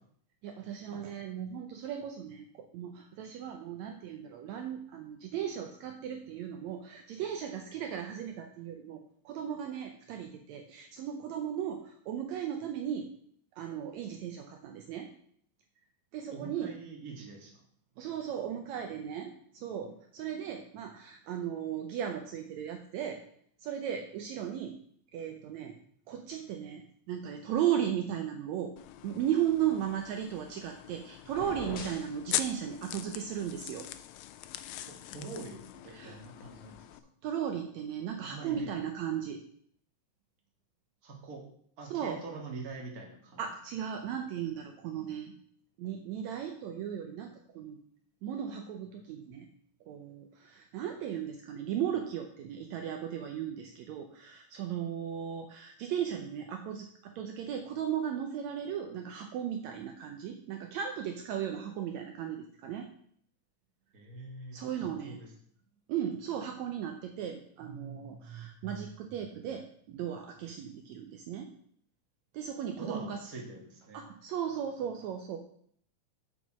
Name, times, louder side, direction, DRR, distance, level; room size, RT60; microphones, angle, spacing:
voice 1, 0.4-9.0 9.3-13.1 13.5-15.1 16.1-16.7 18.0-23.2 23.6-24.8 25.1-25.8 26.1-28.7 29.0-33.9 35.9-36.2 37.2-39.4 41.9-42.2 43.4-45.3 45.8-47.8 48.2-49.5 49.9-62.9 64.5-65.2 65.9-71.5 72.3-73.3 73.9-75.4, right 9 dB, 75° right, 4 dB, 1.9 m, -36 dB
voice 2, 16.3-17.5 34.9-36.8 38.2-38.7 41.0-41.4 41.8-43.4 63.9-65.3 72.8-74.1, right 3 dB, 35° right, 0 dB, 1.9 m, -44 dB
sound 1, 28.8-37.0, left 12 dB, 80° left, 1.8 m, -41 dB
sound 2, 31.2-32.2, left 3 dB, 60° left, 1.0 m, -42 dB
7.2 x 6.0 x 6.0 m, 0.62 s
omnidirectional pair, 3.5 m